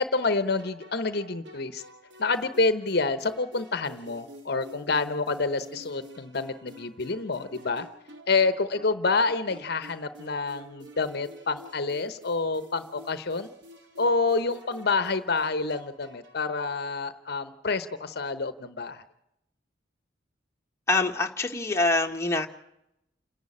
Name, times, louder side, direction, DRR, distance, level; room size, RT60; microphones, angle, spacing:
voice 1, 0.0-1.8 2.2-7.9 8.3-13.5 14.0-19.0, left 3 dB, 60° left, 12 dB, 1.0 m, -28 dB
sound 1, 0.6-16.5, equal, 75° right, 2.6 m, -49 dB
voice 2, 20.9-22.5, left 2 dB, 15° left, 2 dB, 1.5 m, -25 dB
29.0 x 11.0 x 8.6 m, 0.83 s
head